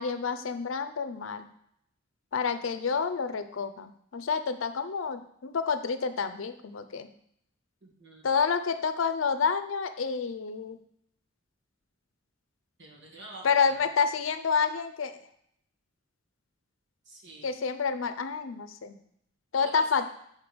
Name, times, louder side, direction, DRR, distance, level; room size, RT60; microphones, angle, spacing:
voice 1, 0.0-1.5 2.3-7.1 8.2-10.8 13.4-15.2 17.4-19.0 19.5-20.0, left 5 dB, 80° left, 10 dB, 0.5 m, -29 dB
voice 2, 7.8-8.3 12.8-13.8 17.1-17.5 19.6-20.1, right 1 dB, 65° right, 0 dB, 1.7 m, -47 dB
5.2 x 4.4 x 6.0 m, 0.72 s
head